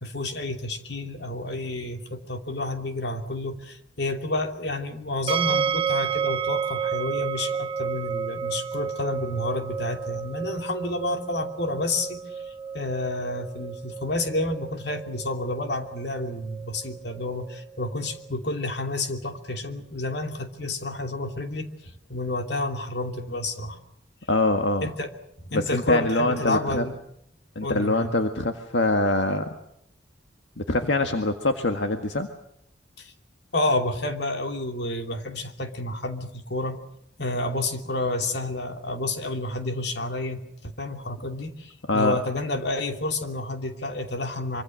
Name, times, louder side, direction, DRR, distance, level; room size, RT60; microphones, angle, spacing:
voice 1, 0.0-21.7 22.1-23.8 24.8-25.1 25.4-27.0 27.6-28.1 33.0-33.1 33.5-36.8 37.2-44.6, left 2 dB, 65° left, 5 dB, 2.9 m, -30 dB
sound 1, 5.3-18.3, right 7 dB, 30° right, 1.1 m, -31 dB
voice 2, 24.3-24.9 25.5-26.8 27.6-29.6 30.6-32.3 41.9-42.2, left 2 dB, 80° left, 5 dB, 1.8 m, -24 dB
25.0 x 25.0 x 6.5 m, 0.74 s
head